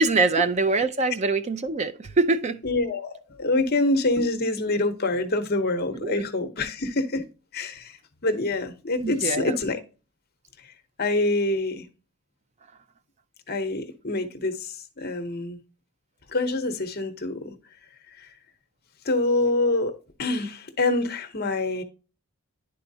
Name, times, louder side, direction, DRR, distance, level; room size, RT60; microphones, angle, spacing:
voice 1, 0.0-2.6 6.0-6.3 9.0-9.5, right 3 dB, 30° right, 0.4 m, -23 dB
voice 2, 2.6-7.3 7.5-8.0 8.2-9.8 10.6-10.7 11.0-11.9 13.5-15.6 16.3-17.6 18.2-18.3 19.0-19.9 20.2-21.8, left 2 dB, 45° left, 0.8 m, -26 dB
10.5 x 4.3 x 2.7 m
head